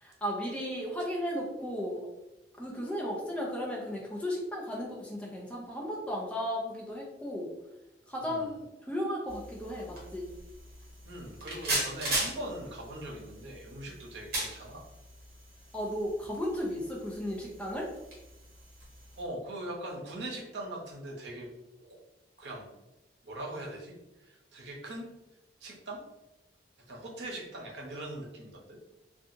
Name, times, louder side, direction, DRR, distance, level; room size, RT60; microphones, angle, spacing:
voice 1, 0.0-2.1 2.6-7.5 8.1-10.3 15.7-17.9, equal, 5° left, -3 dB, 0.5 m, -35 dB
voice 2, 8.2-8.5 11.0-14.8 19.2-21.5 21.8-22.0 22.4-22.7 23.2-23.9 24.2-25.1 25.6-26.0 26.9-28.8, right 1 dB, 90° right, -2 dB, 0.8 m, -41 dB
sound 1, 9.3-19.2, right 1 dB, 55° right, 1.0 m, -39 dB
2.7 x 2.4 x 2.5 m, 0.96 s
head